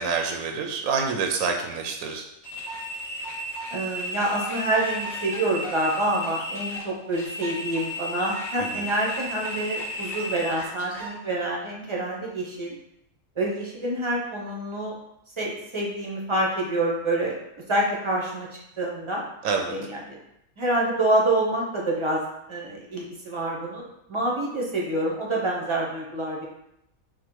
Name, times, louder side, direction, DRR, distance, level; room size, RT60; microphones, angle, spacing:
voice 1, 0.0-2.3 8.6-8.9 19.4-19.7, right 5 dB, 85° right, 3 dB, 1.0 m, -27 dB
sound 1, 2.4-11.1, equal, 25° left, 1.6 m, -34 dB
voice 2, 3.7-12.8 13.4-15.0 15.4-17.3 17.7-18.5 18.8-19.2 19.7-20.2 20.6-22.2 22.5-26.5, right 1 dB, 30° right, -2 dB, 0.5 m, -27 dB
4.7 x 2.1 x 4.5 m, 0.81 s
omnidirectional pair, 1.5 m